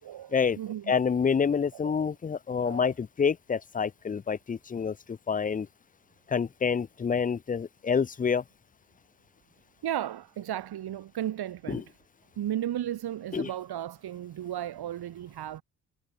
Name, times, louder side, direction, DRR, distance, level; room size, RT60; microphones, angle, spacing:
voice 1, 0.0-0.9 2.6-2.9 9.8-11.8 12.4-15.6, right 11 dB, 55° right, 5.4 m, -34 dB
voice 2, 0.9-5.7 6.3-8.4 11.7-11.8 13.3-13.5, left 6 dB, 20° left, 0.6 m, -27 dB
figure-of-eight pair, 40°, 45 cm